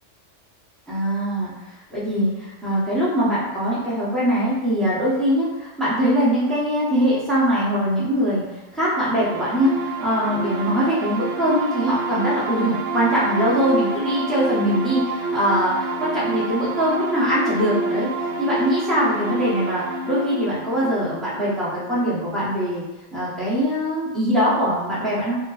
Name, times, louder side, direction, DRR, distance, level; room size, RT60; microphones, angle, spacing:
voice 1, 0.9-8.4 8.7-18.1 18.4-22.8 23.1-25.4, equal, ahead, -9 dB, 0.7 m, -22 dB
sound 1, 8.8-22.3, right 2 dB, 70° right, 0.9 m, -28 dB
4.0 x 2.1 x 2.3 m, 1.1 s
omnidirectional pair, 1.3 m